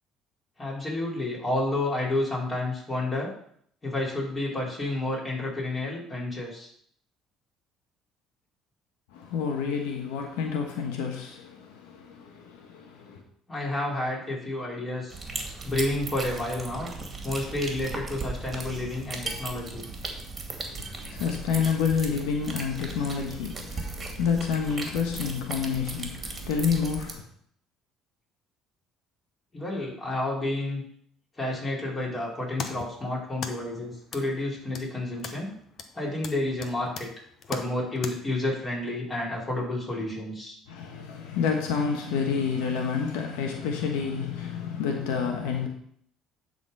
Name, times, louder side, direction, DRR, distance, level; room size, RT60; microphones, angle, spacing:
voice 1, 0.6-3.3 3.8-6.7 13.5-15.2 15.6-16.9 17.2-19.8 29.5-30.8 31.4-35.5 35.9-37.1 37.5-40.6, left 2 dB, 20° left, -4 dB, 4.1 m, -30 dB
voice 2, 9.1-13.2 20.7-27.2 40.7-45.7, left 6 dB, 90° left, 2 dB, 1.2 m, -29 dB
sound 1, 15.1-27.1, right 3 dB, 30° right, 2.0 m, -37 dB
sound 2, 32.2-38.1, left 6 dB, 55° left, 0.9 m, -41 dB
11.0 x 4.1 x 5.4 m, 0.64 s
cardioid pair, 100°, 0 cm